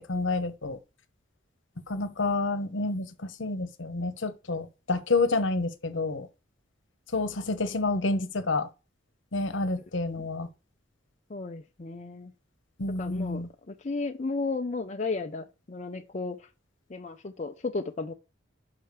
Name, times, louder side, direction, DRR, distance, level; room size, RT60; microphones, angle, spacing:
voice 1, 0.1-0.8 1.9-6.3 7.1-8.7 9.3-10.5 12.8-13.5, left 3 dB, 70° left, 1.0 m, -29 dB
voice 2, 11.3-12.3 13.0-16.5 16.9-18.1, left 3 dB, 35° left, 0.5 m, -34 dB
5.7 x 5.0 x 6.6 m
head